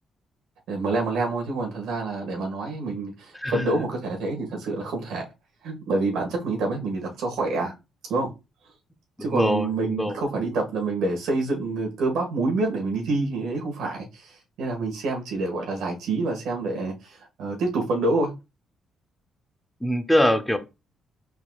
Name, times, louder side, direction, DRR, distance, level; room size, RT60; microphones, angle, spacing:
voice 1, 0.7-5.2 5.6-7.7 8.1-8.3 9.2-14.3 14.6-18.3, right 3 dB, 80° right, 1.7 m, -27 dB
voice 2, 3.3-3.7 9.2-10.2 19.8-20.6, left 1 dB, 5° left, 0.7 m, -23 dB
4.5 x 4.0 x 2.4 m
cardioid pair, 90°, 0 cm